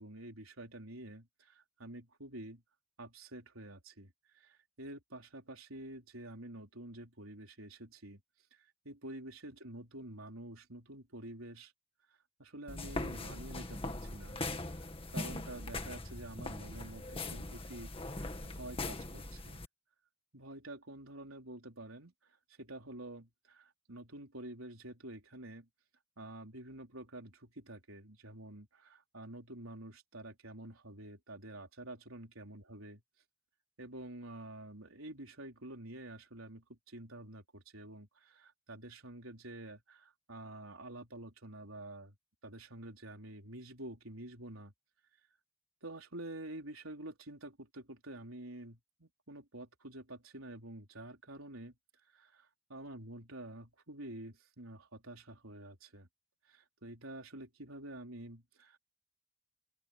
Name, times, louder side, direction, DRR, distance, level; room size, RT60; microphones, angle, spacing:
voice 1, 0.0-2.6 3.0-8.2 8.5-11.7 12.1-14.9 15.1-19.6 20.3-25.7 26.2-33.0 33.8-42.1 42.4-44.7 45.8-51.7 52.1-56.1 56.5-58.8, right 1 dB, 80° right, 4.3 m, -48 dB
sound 1, 12.7-19.7, left 2 dB, 25° left, 1.9 m, -41 dB
open air
head